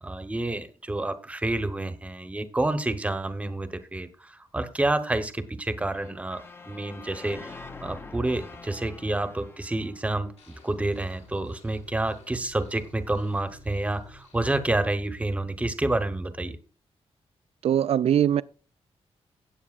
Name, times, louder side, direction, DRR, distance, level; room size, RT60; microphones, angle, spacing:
voice 1, 0.0-16.6, right 2 dB, 10° right, 0.9 m, -29 dB
sound 1, 5.8-10.9, left 3 dB, 20° left, 0.7 m, -45 dB
sound 2, 10.4-14.7, left 2 dB, 70° left, 4.3 m, -53 dB
voice 2, 17.6-18.4, right 10 dB, 70° right, 0.5 m, -21 dB
17.5 x 8.1 x 2.4 m
wide cardioid pair, 175°, 11 cm